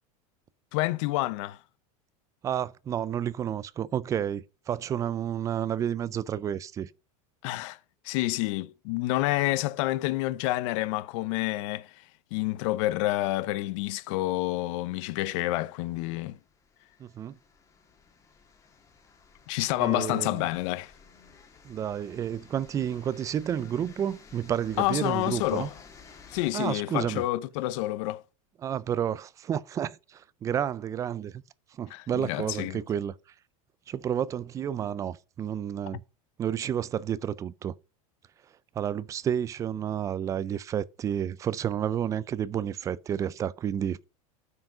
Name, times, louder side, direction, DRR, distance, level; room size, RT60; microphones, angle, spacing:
voice 1, 0.7-1.6 7.4-7.8 8.0-12.0 12.3-16.4 19.5-20.9 24.8-25.7 26.3-28.2 31.9-32.8, left 17 dB, 60° left, 0.6 m, -28 dB
voice 2, 2.4-6.9 17.0-17.4 19.8-20.4 21.6-25.7 26.5-27.2 28.6-31.4 31.8-33.1 33.9-36.0 36.4-37.7 38.8-44.0, right 9 dB, 20° right, 0.3 m, -30 dB
sound 1, 16.2-26.5, left 5 dB, 15° left, 1.6 m, -54 dB
9.5 x 4.8 x 4.9 m
supercardioid pair, 150°, 18 cm